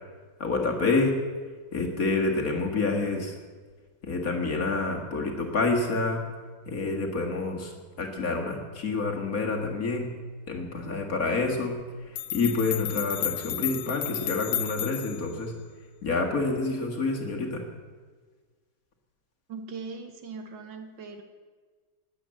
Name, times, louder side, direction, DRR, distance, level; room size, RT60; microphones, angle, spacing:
voice 1, 0.4-1.2 1.7-3.4 4.0-6.2 6.7-10.1 10.5-11.8 12.1-15.5 16.0-17.6, left 3 dB, 45° left, 1 dB, 2.1 m, -28 dB
sound 1, 11.8-11.9 12.2-15.3, left 12 dB, 80° left, 1.5 m, -32 dB
voice 2, 19.5-21.2, right 4 dB, 65° right, 6 dB, 2.0 m, -40 dB
20.0 x 7.8 x 7.7 m, 1.5 s
omnidirectional pair, 2.2 m